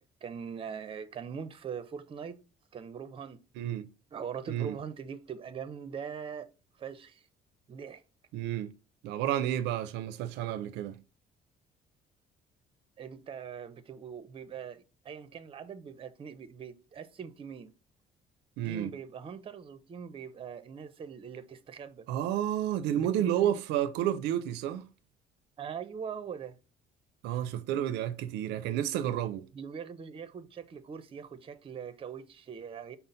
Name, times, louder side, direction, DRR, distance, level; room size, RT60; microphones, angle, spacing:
voice 1, 0.2-2.4 2.7-3.4 4.1-6.5 6.8-7.3 7.7-8.0 13.0-17.8 18.6-22.1 22.9-23.6 25.6-26.6 29.5-33.0, right 7 dB, 35° right, 0.6 m, -42 dB
voice 2, 3.6-3.9 4.5-4.8 8.3-8.7 9.0-11.0 18.6-18.9 22.1-24.8 27.2-29.5, right 11 dB, 90° right, 0.4 m, -31 dB
5.5 x 2.0 x 3.8 m
cardioid pair, 110°, 17 cm